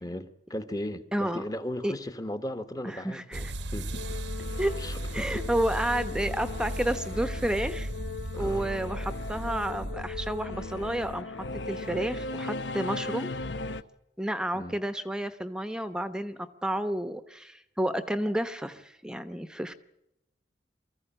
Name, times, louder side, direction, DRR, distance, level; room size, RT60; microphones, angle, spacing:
voice 1, 0.0-4.1 4.8-5.4 8.3-8.7 14.5-14.8, left 1 dB, 20° left, 1.2 m, -37 dB
voice 2, 1.1-1.4 1.8-1.9 2.8-3.4 4.6-4.8 5.1-7.9 8.4-11.4 11.7-13.3 14.2-19.7, right 1 dB, 5° right, 0.9 m, -31 dB
sound 1, 3.3-11.2, right 1 dB, 80° right, 1.1 m, -36 dB
Singing / Musical instrument, 3.9-13.8, left 3 dB, 85° left, 0.9 m, -38 dB
24.5 x 15.0 x 8.9 m
head